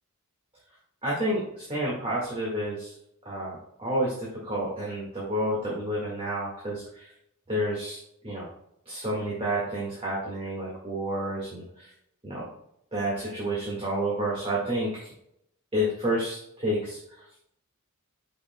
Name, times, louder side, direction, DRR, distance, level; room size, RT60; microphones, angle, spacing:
voice 1, 1.0-2.9 3.3-7.1 7.5-8.5 8.9-11.9 12.2-12.4 12.9-15.1 15.7-17.0, right 1 dB, 25° right, -6 dB, 1.8 m, -30 dB
8.8 x 6.5 x 2.2 m, 0.76 s
head